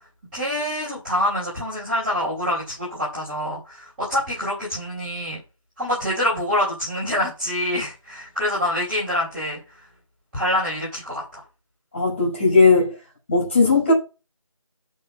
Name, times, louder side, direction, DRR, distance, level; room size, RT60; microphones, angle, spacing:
voice 1, 0.3-5.4 5.8-9.6 10.3-11.4, left 1 dB, 5° right, 2.5 m, -26 dB
voice 2, 11.9-13.0 13.3-13.9, left 3 dB, 20° left, 5.2 m, -17 dB
6.9 x 5.5 x 7.2 m
figure-of-eight pair, 170°, 17 cm